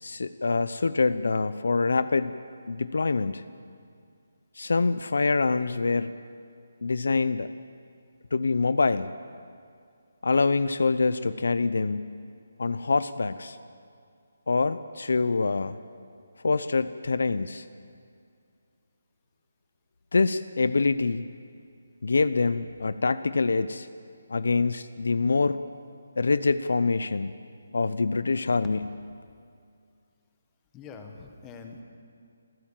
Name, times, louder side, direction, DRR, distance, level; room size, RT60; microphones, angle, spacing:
voice 1, 0.0-2.3 2.7-3.4 4.6-6.1 6.8-7.5 8.3-9.1 10.2-12.2 12.6-13.6 14.5-15.8 16.4-17.6 20.1-21.3 22.0-23.9 24.3-25.6 26.2-27.3 27.7-28.8, left 4 dB, 75° left, 14 dB, 0.7 m, -25 dB
voice 2, 30.7-31.8, left 4 dB, 10° left, 4 dB, 1.5 m, -44 dB
28.0 x 15.0 x 7.5 m, 2.3 s
hypercardioid pair, 170°, 0 cm